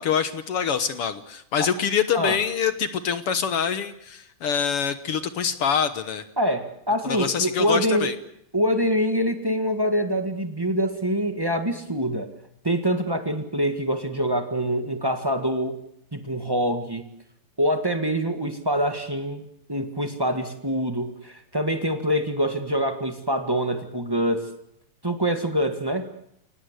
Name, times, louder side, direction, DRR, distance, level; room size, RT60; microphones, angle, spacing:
voice 1, 0.0-6.2 7.0-8.1, left 7 dB, 65° left, 11 dB, 1.4 m, -25 dB
voice 2, 6.4-8.1 8.5-12.3 12.6-15.8 16.1-17.1 17.6-24.5 25.0-26.0, equal, 30° right, 6 dB, 0.4 m, -25 dB
30.0 x 18.5 x 8.2 m, 0.76 s
omnidirectional pair, 4.1 m